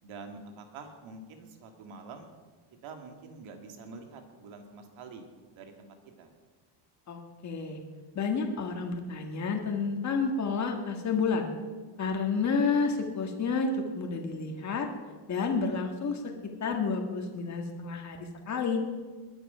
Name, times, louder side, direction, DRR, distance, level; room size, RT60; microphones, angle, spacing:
voice 1, 0.0-2.3 2.8-6.3, right 4 dB, 70° right, 4 dB, 2.4 m, -46 dB
voice 2, 7.1-7.8 8.2-11.5 12.0-14.9 15.3-18.8, left 4 dB, 35° left, 3 dB, 1.9 m, -30 dB
20.5 x 10.0 x 5.7 m, 1.4 s
cardioid pair, 140°, 50 cm